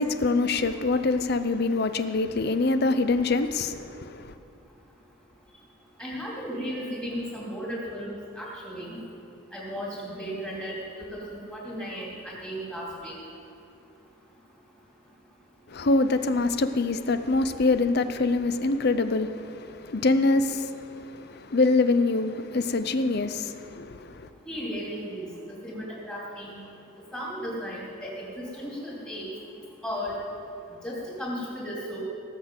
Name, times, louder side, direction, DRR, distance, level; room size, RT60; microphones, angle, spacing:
voice 1, 0.0-4.3 15.7-24.3, left 3 dB, 50° left, 0.6 m, -25 dB
voice 2, 6.0-9.0 9.5-10.7 11.1-13.1 24.5-25.3 25.6-26.6 27.1-29.3 29.8-30.2 30.8-32.0, equal, 5° left, 3.2 m, -35 dB
18.0 x 6.6 x 7.8 m
head